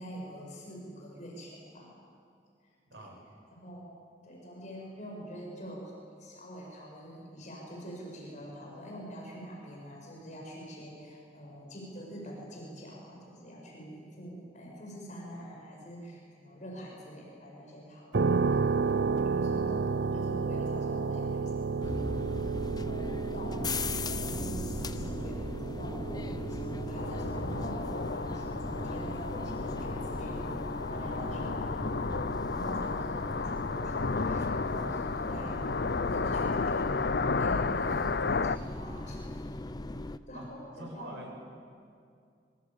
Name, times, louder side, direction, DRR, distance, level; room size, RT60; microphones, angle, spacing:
voice 1, 0.0-2.0 2.9-3.1 3.5-3.9 4.2-5.9 6.2-22.2 22.7-30.5 30.9-31.7 32.5-35.8 36.1-37.0 37.3-39.2 40.3-41.3, equal, 45° left, -2 dB, 7.8 m, -45 dB
sound 1, 18.1-32.8, right 4 dB, 70° right, 0.6 m, -33 dB
sound 2, 21.8-40.2, left 2 dB, 25° left, 0.8 m, -38 dB
sound 3, 27.0-38.6, left 4 dB, 65° left, 0.7 m, -32 dB
voice 2, 40.8-41.4, right 1 dB, 85° right, 1 dB, 7.2 m, -44 dB
26.5 x 25.0 x 9.0 m, 2.3 s
head